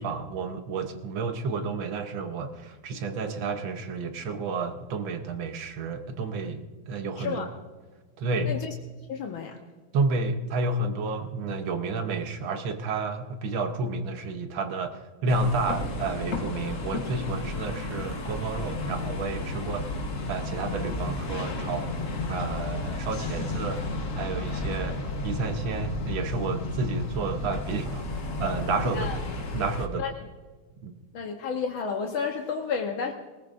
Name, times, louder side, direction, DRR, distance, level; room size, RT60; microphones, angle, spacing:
voice 1, 0.0-7.4 8.2-8.6 9.9-19.9 20.3-21.9 22.3-23.8 24.1-29.1 29.5-30.0 30.8-30.9, right 3 dB, 70° right, 7 dB, 1.7 m, -31 dB
voice 2, 7.2-7.5 8.5-8.7 9.1-9.6 28.9-29.2 30.0-30.1 31.1-33.1, left 5 dB, 75° left, 3 dB, 1.8 m, -31 dB
sound 1, 15.3-29.9, left 2 dB, 45° left, 1.4 m, -33 dB
20.0 x 18.5 x 2.6 m, 1.3 s
omnidirectional pair, 2.3 m